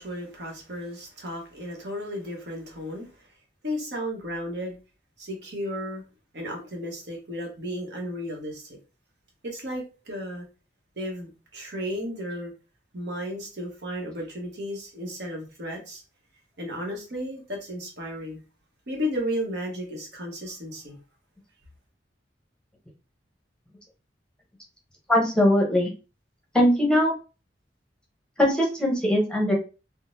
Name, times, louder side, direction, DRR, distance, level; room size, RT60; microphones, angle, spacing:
voice 1, 0.0-3.1 3.6-4.7 5.2-6.0 6.3-8.6 9.4-10.4 11.0-12.5 12.9-16.0 16.6-18.4 18.9-21.0, equal, 70° right, 1.0 m, -34 dB
voice 2, 25.1-25.9 26.5-27.1 28.4-29.5, left 1 dB, 5° left, 0.8 m, -21 dB
3.6 x 2.1 x 2.5 m
head